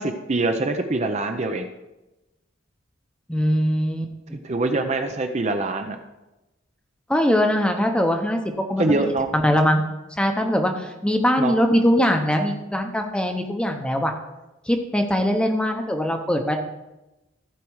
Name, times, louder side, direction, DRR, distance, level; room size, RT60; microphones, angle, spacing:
voice 1, 0.0-1.7 4.4-6.0 8.8-9.3 11.4-11.5, right 2 dB, 35° right, 5 dB, 0.6 m, -24 dB
voice 2, 3.3-4.4 7.1-8.4 8.7-9.0 9.3-9.8 10.2-14.1 14.7-16.6, equal, 5° left, 4 dB, 0.9 m, -21 dB
15.0 x 5.1 x 4.7 m, 1.0 s
head